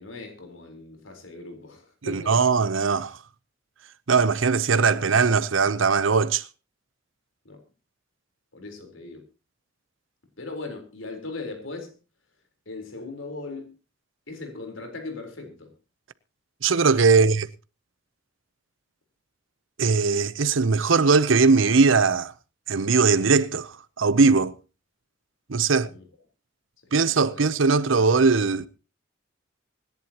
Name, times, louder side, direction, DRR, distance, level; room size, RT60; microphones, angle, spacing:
voice 1, 0.0-2.6 4.9-5.2 7.4-7.6 8.5-9.2 10.4-11.9 12.7-13.7 14.3-15.7 17.1-17.3 25.9-26.0 26.8-27.4, left 3 dB, 85° left, 4.1 m, -39 dB
voice 2, 2.1-3.2 4.1-6.4 16.6-17.5 19.8-22.3 22.7-24.5 25.5-25.9 26.9-28.7, right 4 dB, 80° right, 0.7 m, -20 dB
25.0 x 11.0 x 3.0 m
head